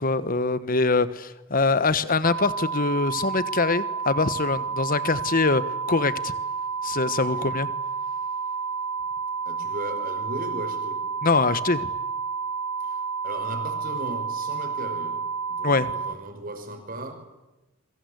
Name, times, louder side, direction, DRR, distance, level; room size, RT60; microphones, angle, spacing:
voice 1, 0.0-5.6 5.9-6.3 6.8-7.7 11.2-11.9 15.6-15.9, left 3 dB, 45° left, 14 dB, 1.2 m, -23 dB
sound 1, 2.2-16.1, right 5 dB, 75° right, 1.0 m, -30 dB
voice 2, 7.3-7.6 9.5-11.1 12.8-17.3, right 1 dB, 45° right, 5 dB, 5.7 m, -37 dB
28.0 x 23.5 x 8.2 m, 1.1 s
head